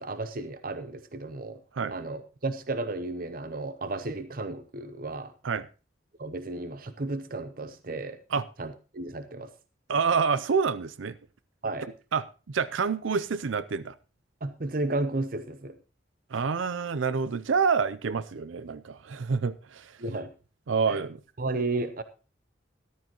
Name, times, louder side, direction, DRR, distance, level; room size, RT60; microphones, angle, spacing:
voice 1, 0.0-1.6 1.9-5.3 6.2-8.2 8.6-9.5 11.6-11.9 14.4-15.8 20.0-20.3 20.9-21.0 21.4-22.0, right 2 dB, 50° right, 0.7 m, -33 dB
voice 2, 9.9-11.2 12.1-13.9 16.3-20.0 20.7-21.2, right 5 dB, 90° right, 0.6 m, -27 dB
13.5 x 12.5 x 3.0 m
head